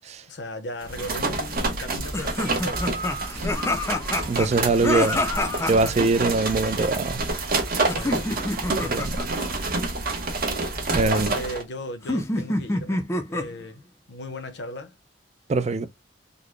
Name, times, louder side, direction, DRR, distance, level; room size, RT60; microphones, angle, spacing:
voice 1, 0.3-3.1 5.1-5.6 7.9-8.3 11.0-14.9, left 1 dB, 70° left, 0.8 m, -37 dB
sound 1, 0.8-11.6, right 3 dB, 55° right, 1.0 m, -28 dB
sound 2, 2.1-5.9 7.9-9.3 12.1-13.6, left 2 dB, 15° left, 0.5 m, -27 dB
voice 2, 4.3-5.2 5.7-7.2 8.9-9.2 10.9-11.3 15.5-15.9, right 3 dB, 40° right, 0.4 m, -22 dB
3.9 x 2.1 x 3.1 m
head